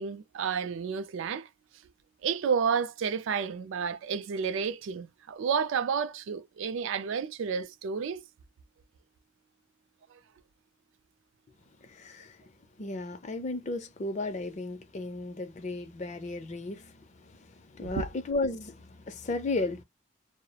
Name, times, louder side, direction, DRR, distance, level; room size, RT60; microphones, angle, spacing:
voice 1, 0.0-1.5 2.2-8.2 17.8-18.0, right 6 dB, 65° right, 0.3 m, -31 dB
voice 2, 11.8-12.4 12.8-19.8, left 2 dB, 35° left, 0.4 m, -34 dB
2.3 x 2.0 x 2.8 m
head